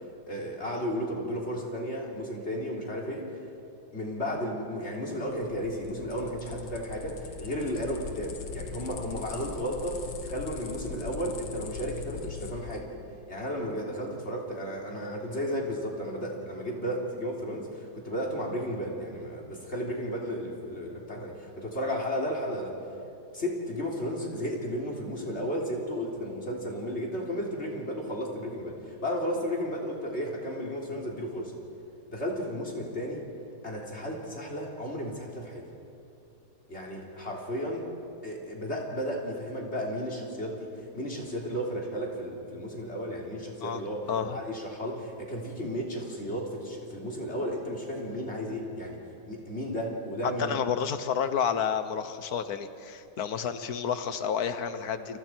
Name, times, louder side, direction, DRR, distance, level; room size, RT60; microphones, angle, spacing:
voice 1, 0.3-3.3 3.9-12.9 13.3-22.7 23.3-31.5 32.1-33.2 33.6-35.6 36.7-37.8 38.2-44.0 44.3-49.0 49.3-50.6, equal, 35° left, -2 dB, 3.6 m, -33 dB
sound 1, 5.2-12.8, left 6 dB, 80° left, 2.1 m, -41 dB
voice 2, 50.2-55.2, left 7 dB, 60° left, 10 dB, 1.5 m, -30 dB
29.5 x 29.0 x 4.6 m, 2.7 s
omnidirectional pair, 1.9 m